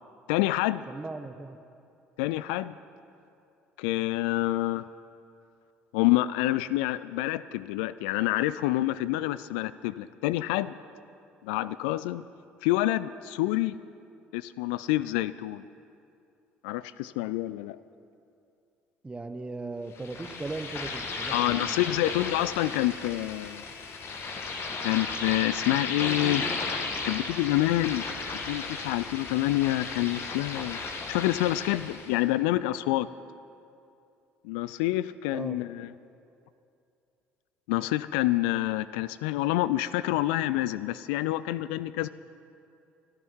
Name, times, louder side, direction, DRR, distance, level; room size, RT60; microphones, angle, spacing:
voice 1, 0.3-0.8 2.2-2.8 3.8-4.9 5.9-10.7 11.4-12.2 12.6-13.8 14.3-15.6 16.6-17.8 21.3-23.6 24.8-26.5 27.1-28.0 28.5-30.8 31.1-33.1 34.4-35.9 37.7-42.1, left 16 dB, 70° left, 16 dB, 0.3 m, -27 dB
voice 2, 0.9-1.6 19.0-22.1 35.3-35.6, right 3 dB, 20° right, 9 dB, 1.1 m, -38 dB
sound 1, 20.0-32.2, left 4 dB, 45° left, 1.8 m, -35 dB
25.5 x 10.5 x 4.6 m, 2.5 s
figure-of-eight pair, 55°, 6 cm